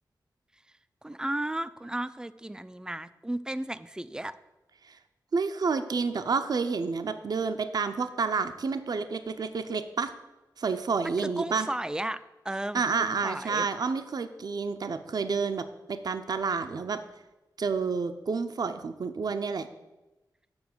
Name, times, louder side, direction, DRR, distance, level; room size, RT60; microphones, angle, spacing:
voice 1, 1.0-4.3 11.0-13.7, right 1 dB, 10° right, 14 dB, 0.4 m, -34 dB
voice 2, 5.3-10.1 10.6-11.7 12.7-17.0 17.6-19.7, right 5 dB, 55° right, 9 dB, 0.6 m, -29 dB
7.1 x 6.4 x 7.8 m, 1.0 s
wide cardioid pair, 135°, 8 cm